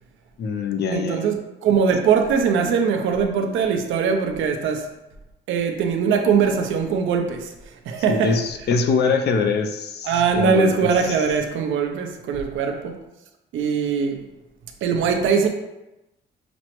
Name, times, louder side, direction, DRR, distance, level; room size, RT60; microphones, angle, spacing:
voice 1, 0.4-1.3 8.1-10.9, left 4 dB, 55° left, 0.5 m, -23 dB
voice 2, 0.9-4.9 5.5-7.5 7.9-8.4 10.0-13.0 13.5-14.2 14.8-15.5, right 6 dB, 80° right, 0.6 m, -21 dB
5.9 x 2.0 x 3.0 m
cardioid pair, 90°, 20 cm